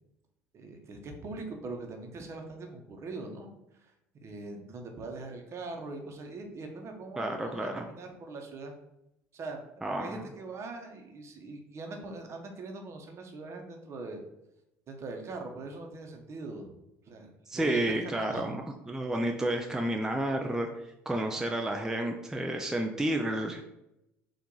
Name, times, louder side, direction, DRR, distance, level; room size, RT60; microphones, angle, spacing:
voice 1, 0.5-3.5 3.8-3.9 4.2-8.7 9.3-9.7 10.0-14.2 14.9-16.7 17.1-18.6, right 3 dB, 45° right, 4 dB, 0.9 m, -41 dB
voice 2, 7.2-7.9 9.8-10.3 17.5-20.7 21.1-23.6, right 1 dB, 10° right, 3 dB, 0.4 m, -31 dB
4.4 x 2.5 x 4.0 m, 0.86 s
hypercardioid pair, 75°, 7 cm